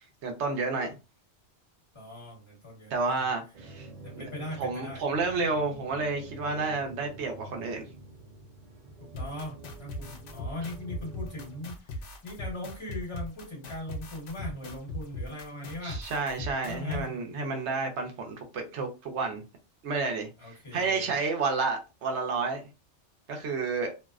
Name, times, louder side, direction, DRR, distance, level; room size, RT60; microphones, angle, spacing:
voice 1, 0.2-1.0 2.9-3.9 4.2-4.3 4.6-7.9 15.8-19.4 19.8-22.6 23.3-23.9, right 4 dB, 75° right, 1.0 m, -30 dB
voice 2, 1.9-3.2 4.0-5.0 9.0-16.0 16.7-17.2 20.4-21.1, left 1 dB, 25° left, 1.2 m, -40 dB
sound 1, 3.5-11.6, right 3 dB, 45° right, 0.5 m, -47 dB
sound 2, 9.1-17.0, left 1 dB, 85° left, 0.9 m, -38 dB
2.6 x 2.1 x 2.3 m
omnidirectional pair, 1.2 m